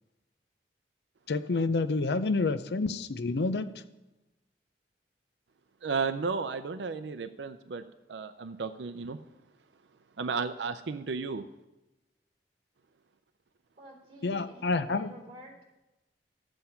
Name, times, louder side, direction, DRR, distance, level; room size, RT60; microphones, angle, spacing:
voice 1, 1.3-3.8 14.2-15.1, left 3 dB, 70° left, 12 dB, 0.6 m, -29 dB
voice 2, 5.8-7.8 8.1-9.2 10.2-11.4, right 4 dB, 80° right, 10 dB, 0.5 m, -33 dB
voice 3, 13.8-15.6, right 1 dB, 35° right, 0 dB, 3.8 m, -49 dB
13.5 x 7.8 x 5.7 m, 1.0 s
head